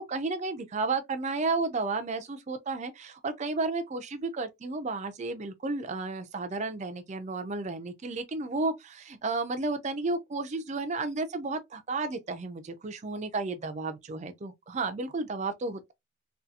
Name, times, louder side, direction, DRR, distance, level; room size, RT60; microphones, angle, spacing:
voice 1, 0.0-15.9, right 3 dB, 35° right, 0.4 m, -32 dB
2.7 x 2.4 x 2.3 m
head